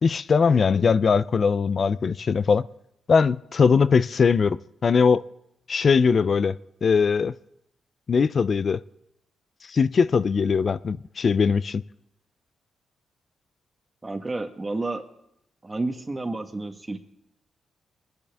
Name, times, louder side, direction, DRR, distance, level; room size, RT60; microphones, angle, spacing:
voice 1, 0.0-2.6 3.1-5.2 5.7-7.3 8.1-8.8 9.7-11.8, left 5 dB, 45° left, 0.4 m, -21 dB
voice 2, 14.0-15.0 15.6-17.0, right 2 dB, 20° right, 1.2 m, -30 dB
24.5 x 10.0 x 3.5 m
cardioid pair, 120°, 0 cm